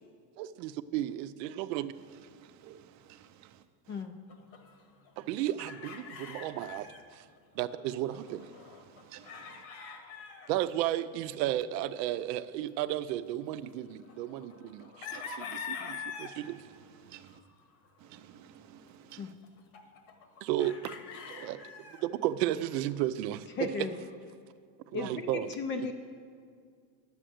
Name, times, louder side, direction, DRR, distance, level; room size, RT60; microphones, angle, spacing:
voice 1, 0.4-1.9 5.2-6.9 7.6-8.5 10.5-16.6 20.4-20.8 21.3-21.6 22.0-23.5 24.9-25.5 25.8-25.9, right 13 dB, 80° right, 0.6 m, -33 dB
voice 2, 2.3-3.6 6.6-6.7 8.9-9.6 15.1-15.2 16.4-17.4 18.0-19.3, right 11 dB, 35° right, 0.6 m, -54 dB
sound 1, 4.3-7.1 7.4-7.5 7.6-10.5 11.4-11.5 13.5-16.3 17.1-17.9 19.1-19.2 19.4-22.0 23.5-24.2, left 6 dB, 60° left, 1.5 m, -45 dB
voice 3, 23.6-24.0 24.9-25.9, left 3 dB, 25° left, 0.4 m, -35 dB
10.0 x 7.5 x 7.7 m
supercardioid pair, 140°, 49 cm